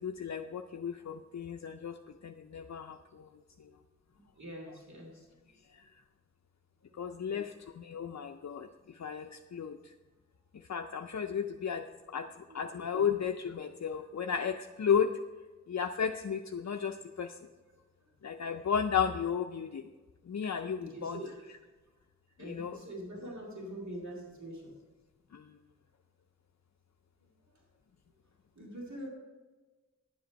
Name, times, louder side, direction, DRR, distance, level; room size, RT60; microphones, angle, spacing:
voice 1, 0.0-3.3 5.7-5.8 6.9-9.9 10.5-15.2 15.7-17.4 18.2-19.8 20.3-21.2 22.4-22.8 25.3-25.5, left 7 dB, 65° left, 5 dB, 0.5 m, -34 dB
voice 2, 4.4-5.5 6.9-7.0 9.6-9.7 12.5-12.6 17.2-17.3 20.8-21.5 22.4-24.7 28.6-29.1, right 1 dB, 75° right, -3 dB, 2.4 m, -44 dB
10.0 x 7.8 x 5.1 m, 1.3 s
wide cardioid pair, 45°, 29 cm